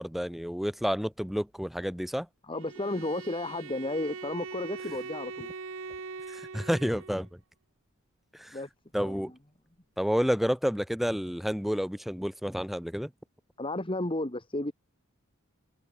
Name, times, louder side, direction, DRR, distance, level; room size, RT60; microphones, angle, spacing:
voice 1, 0.0-2.3 6.3-7.3 8.3-8.6 8.9-9.3 10.0-13.1, equal, ahead, 0.6 m, -30 dB
voice 2, 2.5-5.5 8.5-8.7 9.0-9.3 13.6-14.7, left 1 dB, 25° left, 1.9 m, -33 dB
Bowed string instrument, 2.5-7.3, right 4 dB, 65° right, 0.9 m, -42 dB
head